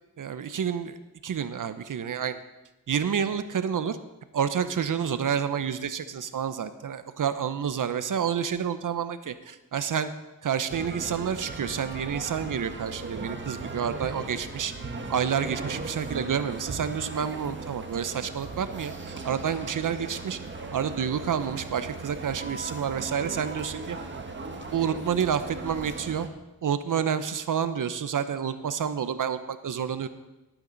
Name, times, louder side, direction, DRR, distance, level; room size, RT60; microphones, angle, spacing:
voice 1, 0.2-1.0 1.2-2.4 2.9-4.0 4.3-10.1 10.4-14.7 15.1-20.4 20.7-24.0 24.7-26.3 26.6-30.1, right 7 dB, 60° right, 11 dB, 0.8 m, -29 dB
sound 1, 10.7-26.3, right 3 dB, 30° right, 1.5 m, -38 dB
18.5 x 9.0 x 4.0 m, 1.0 s
cardioid pair, 85°, 36 cm